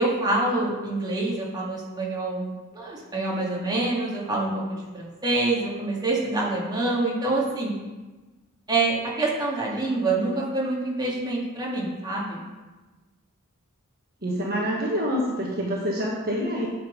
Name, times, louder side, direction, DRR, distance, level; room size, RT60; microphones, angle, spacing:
voice 1, 0.0-7.7 8.7-12.4, right 2 dB, 20° right, -4 dB, 2.0 m, -26 dB
voice 2, 14.2-16.7, equal, 45° right, -3 dB, 1.3 m, -26 dB
10.0 x 5.3 x 5.1 m, 1.2 s
head